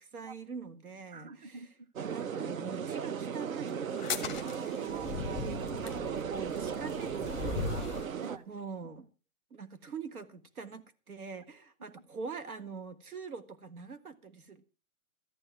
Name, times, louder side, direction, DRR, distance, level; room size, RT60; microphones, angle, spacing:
voice 1, 0.0-1.7 2.1-4.8 5.8-8.1 8.5-9.1 9.5-14.7, right 5 dB, 90° right, 1.9 m, -44 dB
voice 2, 1.1-1.9 4.4-6.0 8.2-8.5, right 5 dB, 30° right, 0.8 m, -48 dB
sound 1, 2.0-8.4, right 7 dB, 70° right, 1.0 m, -36 dB
sound 2, 3.9-8.1, left 6 dB, ahead, 0.7 m, -39 dB
13.5 x 10.0 x 6.0 m
hypercardioid pair, 165°, 42 cm